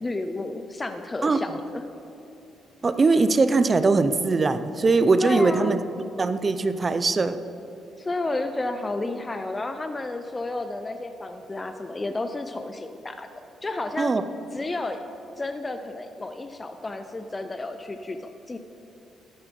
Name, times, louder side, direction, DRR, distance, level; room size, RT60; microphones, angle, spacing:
voice 1, 0.0-1.8 5.2-5.8 8.0-14.1 14.5-15.0 15.4-18.6, left 2 dB, 20° left, 7 dB, 0.5 m, -31 dB
voice 2, 2.8-5.8 6.2-7.4 14.0-14.2, right 3 dB, 30° right, 11 dB, 0.5 m, -21 dB
13.0 x 7.2 x 5.3 m, 2.8 s
cardioid pair, 90°, 0 cm